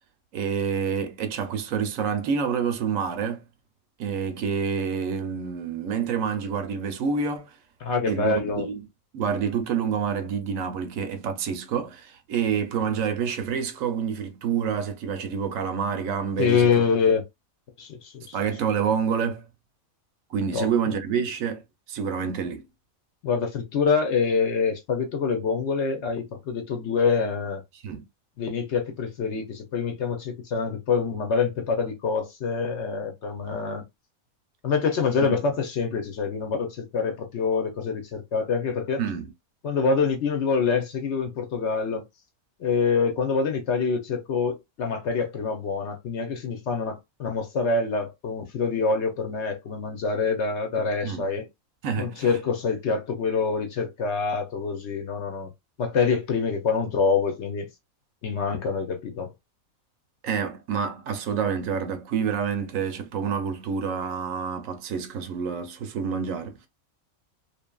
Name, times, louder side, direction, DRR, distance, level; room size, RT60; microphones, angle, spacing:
voice 1, 0.3-3.4 4.0-7.6 8.1-8.9 9.1-16.9 18.3-19.5 20.3-21.6 21.9-22.6 27.8-28.0 35.2-35.4 39.0-39.3 51.0-51.2 51.8-52.3 60.2-66.7, right 7 dB, 75° right, 0.9 m, -28 dB
voice 2, 7.8-8.7 16.4-17.2 17.8-18.4 20.5-20.7 23.2-27.6 28.4-33.8 34.6-39.0 39.6-42.0 42.6-51.5 52.0-55.5 55.8-57.7 58.2-59.3, left 5 dB, 60° left, 0.8 m, -26 dB
2.7 x 2.5 x 2.2 m
omnidirectional pair, 1.5 m